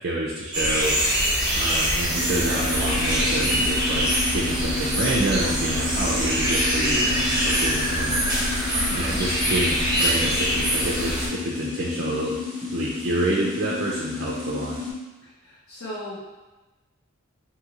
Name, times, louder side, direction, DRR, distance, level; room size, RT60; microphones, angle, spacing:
voice 1, 0.0-1.0 1.5-8.3 8.9-12.3 12.6-14.8, right 2 dB, 45° right, -4 dB, 0.4 m, -28 dB
sound 1, 0.5-11.3, equal, 20° right, 0.8 m, -24 dB
sound 2, 0.8-6.0, left 2 dB, 20° left, 0.3 m, -37 dB
sound 3, 2.2-14.9, left 4 dB, 35° left, 0.9 m, -31 dB
voice 2, 8.7-9.2 15.2-16.2, left 1 dB, 70° left, -9 dB, 0.7 m, -38 dB
2.6 x 2.5 x 2.9 m, 1.1 s
head